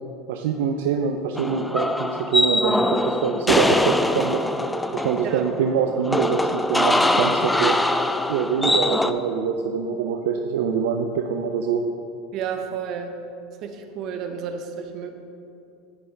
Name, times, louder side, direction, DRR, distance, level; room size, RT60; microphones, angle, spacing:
voice 1, 0.3-4.4 4.9-7.8 8.3-11.8, right 6 dB, 75° right, 4 dB, 0.4 m, -24 dB
sound 1, 1.4-9.1, left 1 dB, 5° left, 0.3 m, -23 dB
voice 2, 12.3-13.2 13.6-15.1, right 7 dB, 50° right, 6 dB, 0.8 m, -31 dB
9.6 x 5.3 x 3.3 m, 2.6 s
hypercardioid pair, 90°, 0 cm